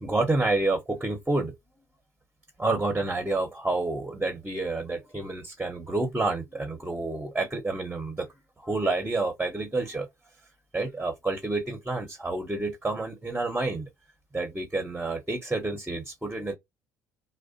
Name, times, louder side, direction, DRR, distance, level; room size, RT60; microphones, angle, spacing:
voice 1, 0.0-1.5 2.6-8.3 8.6-10.1 10.7-13.9 14.3-16.5, right 2 dB, 15° right, 0.7 m, -29 dB
2.7 x 2.1 x 2.5 m
hypercardioid pair, 65°, 9 cm